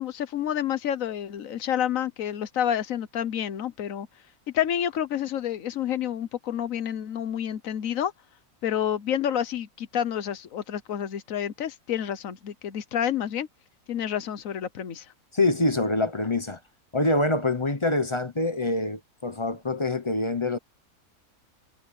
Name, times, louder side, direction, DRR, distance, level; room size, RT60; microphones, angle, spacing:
voice 1, 0.0-4.1 4.5-8.1 8.6-13.5 13.9-15.1, left 10 dB, 80° left, 1.4 m, -29 dB
voice 2, 15.3-16.6 16.9-20.6, left 2 dB, 25° left, 0.9 m, -25 dB
omnidirectional pair, 1.4 m